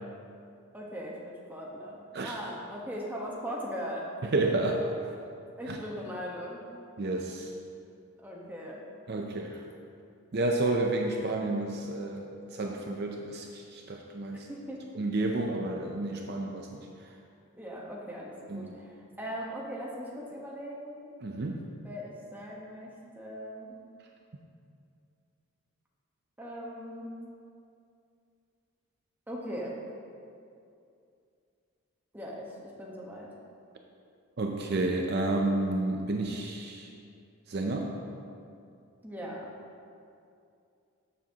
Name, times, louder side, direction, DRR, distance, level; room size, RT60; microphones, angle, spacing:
voice 1, 0.7-4.1 5.6-6.6 8.2-8.8 14.3-14.8 17.5-21.0 21.8-23.8 26.4-27.1 29.3-29.8 32.1-33.3 39.0-39.5, equal, 10° right, -4 dB, 1.2 m, -39 dB
voice 2, 4.2-5.2 5.7-5.8 7.0-7.5 9.1-9.6 10.3-14.5 14.9-17.1 18.5-18.7 21.2-21.7 34.4-36.9 37.5-38.0, right 2 dB, 50° right, 1 dB, 0.5 m, -31 dB
13.5 x 7.1 x 2.9 m, 2.5 s
head